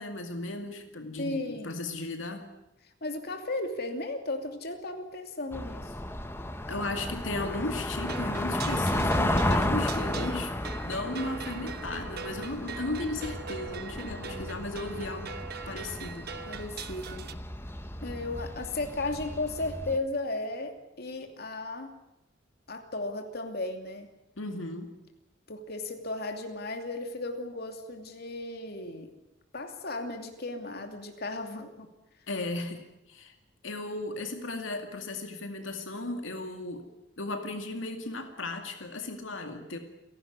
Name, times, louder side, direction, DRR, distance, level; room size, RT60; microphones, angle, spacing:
voice 1, 0.0-2.5 6.7-10.5 10.8-15.3 15.7-16.3 24.4-24.9 32.3-33.3 33.6-36.9 37.2-39.8, left 2 dB, 80° left, 5 dB, 2.2 m, -35 dB
voice 2, 1.2-1.7 3.0-5.9 14.0-14.7 16.5-17.2 18.0-21.9 22.7-24.1 25.5-29.1 29.5-31.9, left 2 dB, 55° left, 5 dB, 2.7 m, -35 dB
sound 1, 5.5-20.0, left 1 dB, 15° left, 1.3 m, -33 dB
sound 2, 8.0-17.3, right 6 dB, 55° right, 1.2 m, -42 dB
29.5 x 12.0 x 9.6 m, 0.93 s
head